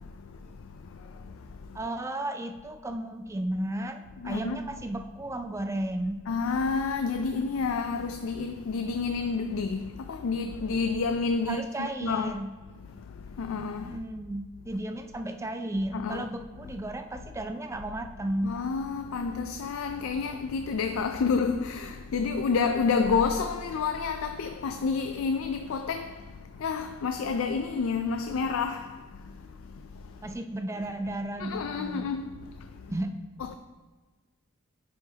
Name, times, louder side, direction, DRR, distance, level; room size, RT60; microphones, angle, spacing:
voice 1, 1.7-6.2 11.5-12.5 13.8-18.6 30.2-32.1 32.9-33.1, right 1 dB, 15° right, 0.3 m, -34 dB
voice 2, 4.2-4.7 6.3-12.4 13.4-14.0 15.9-16.2 18.4-26.2 26.6-28.9 31.4-32.2 33.4-33.5, left 5 dB, 65° left, 0.3 m, -29 dB
10.0 x 4.9 x 2.8 m
head